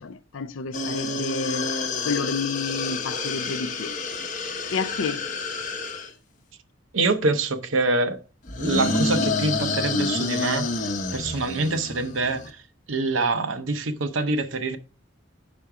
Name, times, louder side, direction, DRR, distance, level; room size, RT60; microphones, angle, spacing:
voice 1, 0.0-1.7 2.0-4.0 4.7-5.3, left 4 dB, 80° left, 0.5 m, -30 dB
sound 1, 0.7-6.1 8.5-12.5, left 3 dB, 40° left, 0.7 m, -28 dB
voice 2, 6.9-8.2 8.6-10.7 11.1-12.6 12.9-14.8, right 3 dB, 75° right, 0.7 m, -25 dB
5.6 x 5.2 x 4.7 m
head